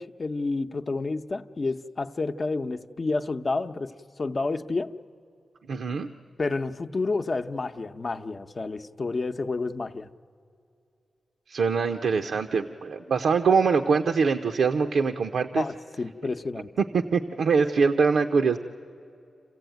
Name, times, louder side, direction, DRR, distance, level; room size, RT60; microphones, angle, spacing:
voice 1, 0.0-4.9 6.4-10.1 15.5-16.7, left 3 dB, 45° left, 0.7 m, -30 dB
voice 2, 5.7-6.1 11.5-15.6 16.8-18.6, right 5 dB, 85° right, 0.7 m, -23 dB
28.0 x 15.5 x 9.2 m
cardioid pair, 65°, 0 cm